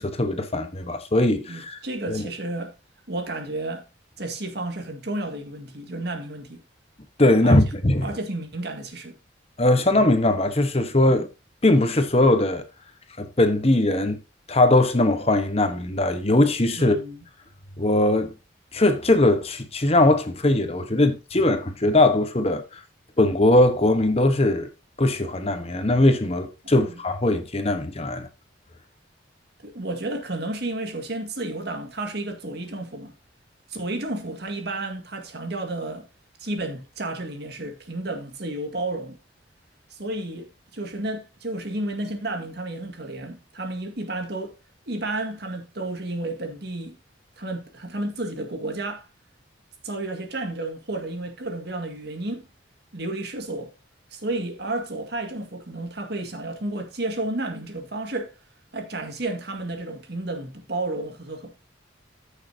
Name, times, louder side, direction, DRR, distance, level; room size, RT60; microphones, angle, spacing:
voice 1, 0.0-1.8 2.1-2.3 7.2-8.1 9.6-11.3 11.6-12.6 13.2-14.2 14.5-17.0 17.8-18.3 18.7-22.6 23.2-24.7 25.0-28.3, left 1 dB, 35° left, 1.2 m, -20 dB
voice 2, 1.5-2.7 3.1-3.8 4.2-6.6 7.4-7.6 8.0-9.1 16.8-17.2 26.6-27.0 29.6-33.1 33.7-36.1 36.4-39.2 39.9-44.5 44.9-47.0 47.4-49.0 49.8-52.4 52.9-53.7 54.1-58.3 58.7-61.6, right 2 dB, 60° right, 2.0 m, -32 dB
14.5 x 6.7 x 2.9 m
head